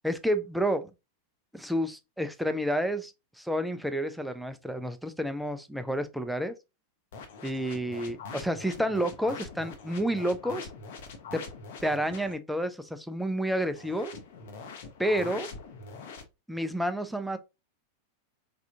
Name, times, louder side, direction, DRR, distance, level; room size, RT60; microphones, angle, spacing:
voice 1, 0.0-0.9 1.5-3.1 3.4-6.5 7.4-10.7 11.8-14.1 15.0-15.5 16.5-17.4, equal, ahead, 0.4 m, -30 dB
sound 1, 7.1-12.4 13.7-16.2, left 4 dB, 55° left, 0.7 m, -43 dB
3.3 x 2.4 x 2.6 m
figure-of-eight pair, 90°, 0 cm